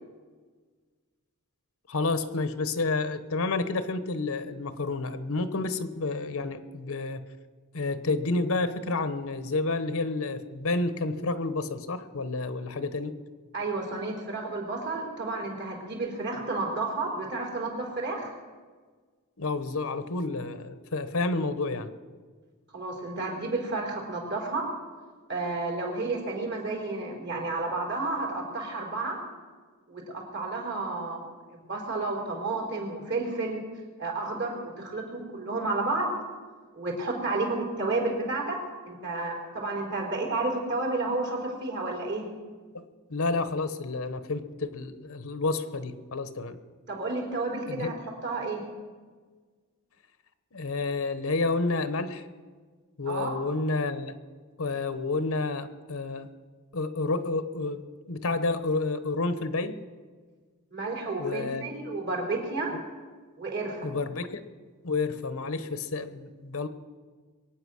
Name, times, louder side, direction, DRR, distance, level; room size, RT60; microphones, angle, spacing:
voice 1, 1.9-7.2 7.7-13.2 19.4-21.9 42.7-42.8 43.1-46.6 47.7-47.9 50.5-52.2 53.0-54.1 54.6-56.3 56.7-57.8 58.1-59.8 61.2-61.6 63.8-64.4 64.8-66.7, left 3 dB, 70° left, 12 dB, 1.0 m, -30 dB
voice 2, 13.5-18.3 22.7-24.7 25.3-29.2 29.9-33.6 34.0-36.1 36.7-38.6 38.9-42.2 46.9-47.9 48.2-48.6 53.0-53.3 60.7-62.7 63.4-63.9, right 3 dB, 55° right, 0 dB, 4.0 m, -31 dB
23.0 x 9.0 x 6.3 m, 1.5 s
head